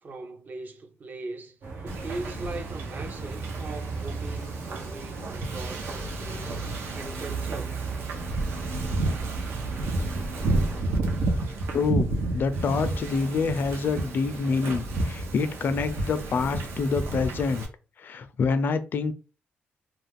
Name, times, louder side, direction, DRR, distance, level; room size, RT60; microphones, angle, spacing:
voice 1, 0.0-1.6 1.8-6.6 6.9-7.8, right 3 dB, 45° right, 0.5 m, -40 dB
sound 1, 1.6-10.8, right 4 dB, 65° right, 1.1 m, -36 dB
Wind / Ocean, 1.9-17.7, right 2 dB, 90° right, 0.7 m, -31 dB
voice 2, 11.7-17.7 18.0-19.1, left 4 dB, 60° left, 0.4 m, -27 dB
2.3 x 2.3 x 3.4 m
cardioid pair, 100°, 4 cm